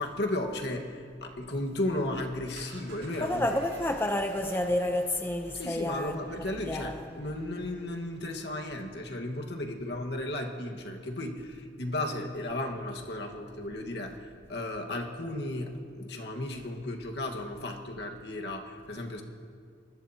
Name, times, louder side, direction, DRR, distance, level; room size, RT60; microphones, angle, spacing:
voice 1, 0.0-3.5 5.5-19.2, left 1 dB, 70° left, 2 dB, 1.6 m, -34 dB
sound 1, 2.4-8.6, right 2 dB, 80° right, 4.1 m, -53 dB
voice 2, 3.2-6.2 6.7-7.1, left 1 dB, 10° left, 4 dB, 0.7 m, -30 dB
25.0 x 20.0 x 2.9 m, 2.2 s
head